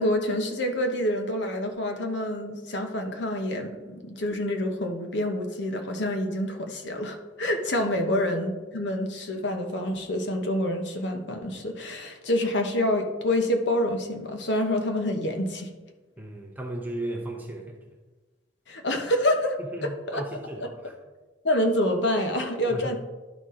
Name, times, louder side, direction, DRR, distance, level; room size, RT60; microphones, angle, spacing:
voice 1, 0.0-15.7 18.7-20.2 20.6-20.7 21.4-23.0, left 1 dB, 65° left, 4 dB, 0.9 m, -27 dB
voice 2, 7.8-8.1 16.2-18.0 19.7-20.9 22.7-23.0, right 1 dB, 10° right, 1 dB, 0.7 m, -36 dB
11.5 x 4.2 x 3.7 m, 1.2 s
head